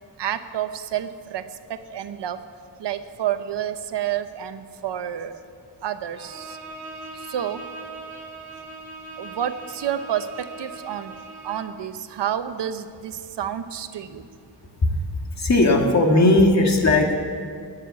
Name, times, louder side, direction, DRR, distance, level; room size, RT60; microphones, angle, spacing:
voice 1, 0.2-2.4 2.8-5.4 5.8-6.6 7.1-7.6 9.2-11.1 11.4-14.3, right 10 dB, 85° right, 10 dB, 0.9 m, -29 dB
Bowed string instrument, 6.1-11.8, right 2 dB, 55° right, 2.6 m, -40 dB
voice 2, 15.4-17.1, left 2 dB, 40° left, 2 dB, 1.9 m, -17 dB
19.5 x 6.8 x 8.5 m, 2.3 s
wide cardioid pair, 130°, 41 cm